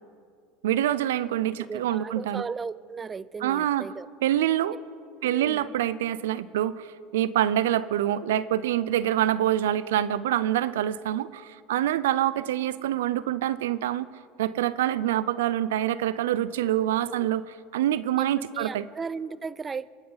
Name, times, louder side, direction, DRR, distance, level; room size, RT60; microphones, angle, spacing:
voice 1, 0.6-2.5 3.4-3.9 4.2-4.8 5.2-14.1 14.4-17.4 17.7-18.9, right 12 dB, 90° right, 17 dB, 0.5 m, -26 dB
voice 2, 1.6-4.1 5.2-5.7 16.8-17.3 18.2-19.9, right 5 dB, 20° right, 19 dB, 0.4 m, -36 dB
26.0 x 9.4 x 4.0 m, 2.3 s
supercardioid pair, 110°, 0 cm